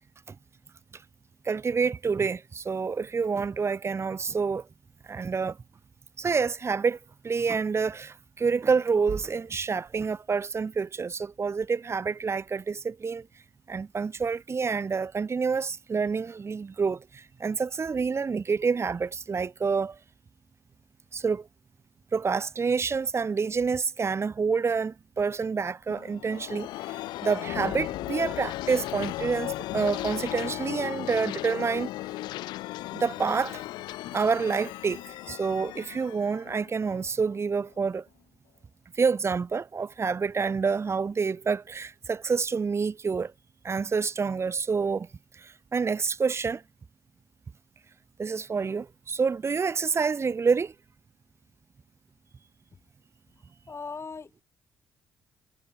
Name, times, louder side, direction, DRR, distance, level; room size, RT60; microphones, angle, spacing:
voice 1, 1.4-4.7 5.1-5.6 6.2-7.0 7.2-13.3 13.7-20.0 21.1-21.5 22.1-31.9 32.9-33.6 34.1-38.0 39.0-43.3 43.6-45.1 45.3-46.6 48.2-50.7, right 5 dB, 35° right, 0.9 m, -28 dB
sound 1, 25.9-37.4, left 17 dB, 70° left, 1.8 m, -36 dB
voice 2, 53.7-54.4, left 4 dB, 35° left, 3.0 m, -38 dB
hypercardioid pair, 45°, 8 cm